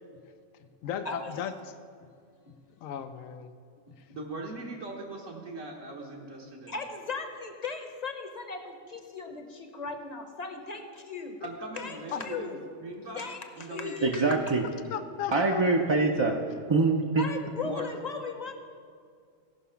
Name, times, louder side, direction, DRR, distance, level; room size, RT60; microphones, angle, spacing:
voice 1, 0.8-1.5 2.8-3.5 12.1-12.2 14.9-15.6, left 9 dB, 85° left, 10 dB, 1.0 m, -35 dB
voice 2, 4.1-6.8 11.4-12.5 12.8-13.2 13.6-14.0 17.6-17.9, right 2 dB, 75° right, -2 dB, 1.6 m, -40 dB
voice 3, 6.7-11.4 11.8-12.6 13.2-14.5 17.1-18.5, left 4 dB, 35° left, 6 dB, 0.9 m, -37 dB
voice 4, 14.0-14.6 15.3-16.3 16.7-17.2, right 3 dB, 35° right, 0 dB, 0.4 m, -24 dB
16.0 x 5.8 x 5.7 m, 2.2 s
omnidirectional pair, 1.3 m